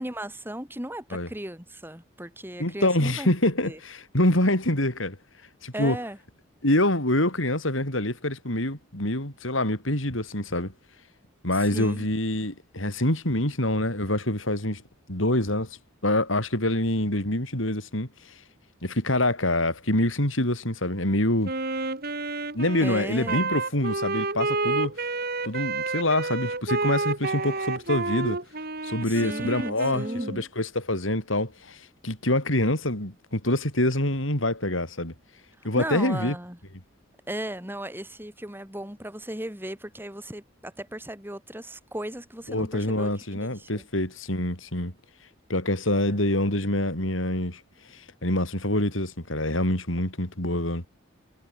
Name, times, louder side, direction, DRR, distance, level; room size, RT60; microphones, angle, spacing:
voice 1, 0.0-3.8 5.7-6.2 11.6-12.1 22.8-23.5 29.0-30.4 35.7-36.6 37.3-43.8 46.0-46.2, right 1 dB, 10° right, 6.4 m, -36 dB
voice 2, 2.6-5.2 5.6-6.0 6.6-10.7 11.4-14.8 15.1-15.8 16.0-18.3 18.8-21.5 22.5-24.9 25.4-28.4 28.8-35.1 35.6-36.3 42.5-44.9 45.5-47.6 47.9-50.8, left 1 dB, 85° left, 7.6 m, -26 dB
Wind instrument woodwind instrument, 21.4-30.4, right 3 dB, 50° right, 4.6 m, -30 dB
head